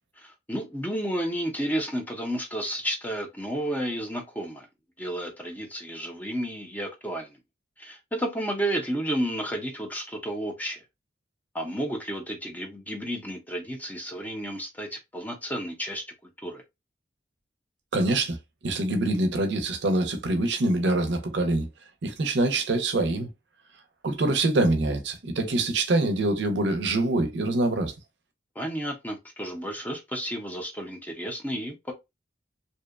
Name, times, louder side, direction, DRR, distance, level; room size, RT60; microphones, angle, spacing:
voice 1, 0.2-4.7 5.0-7.4 7.8-10.8 11.5-16.0 16.4-16.6 28.6-31.9, right 1 dB, 10° left, 0.5 m, -32 dB
voice 2, 17.9-18.4 18.6-21.7 22.0-23.3 24.0-27.9, right 2 dB, 65° right, 0.5 m, -25 dB
2.7 x 2.1 x 2.2 m
head